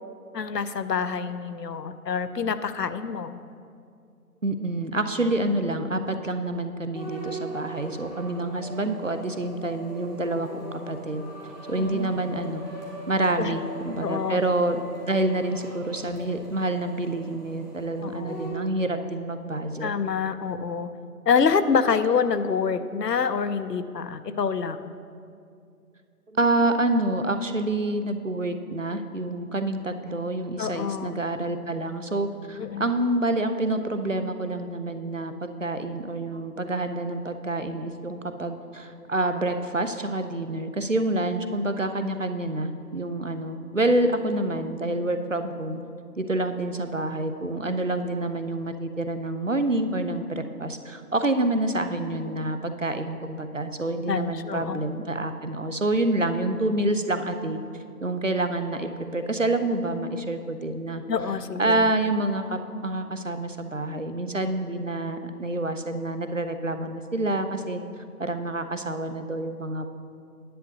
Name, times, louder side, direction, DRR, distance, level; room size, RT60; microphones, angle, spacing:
voice 1, 0.3-3.4 11.8-12.2 13.4-13.6 14.0-14.4 18.0-18.4 19.8-20.9 21.3-24.8 30.6-31.2 32.6-32.9 54.1-54.8 61.1-61.9, left 6 dB, 85° left, 12 dB, 0.7 m, -26 dB
voice 2, 4.4-11.2 11.7-12.7 13.1-14.8 15.1-19.9 26.3-45.8 46.2-57.6 58.0-61.0 61.6-67.8 68.2-69.9, right 2 dB, 55° right, 8 dB, 0.5 m, -27 dB
sound 1, 6.9-18.6, right 1 dB, 30° right, 1.7 m, -40 dB
10.0 x 7.8 x 3.9 m, 2.4 s
figure-of-eight pair, 175°, 47 cm